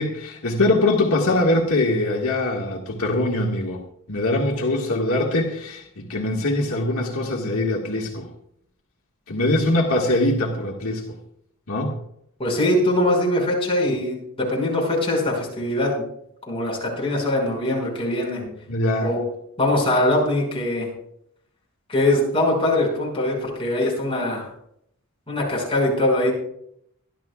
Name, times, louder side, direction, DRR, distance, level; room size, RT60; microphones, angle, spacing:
voice 1, 0.0-3.8 4.1-8.3 9.3-11.0 11.7-11.9 18.4-19.1, left 2 dB, 75° left, -1 dB, 1.8 m, -22 dB
voice 2, 12.4-16.0 16.5-18.4 19.0-19.2 19.6-20.9 21.9-24.5 25.3-26.3, left 1 dB, 25° left, -2 dB, 5.9 m, -22 dB
25.0 x 11.5 x 2.4 m, 0.72 s
head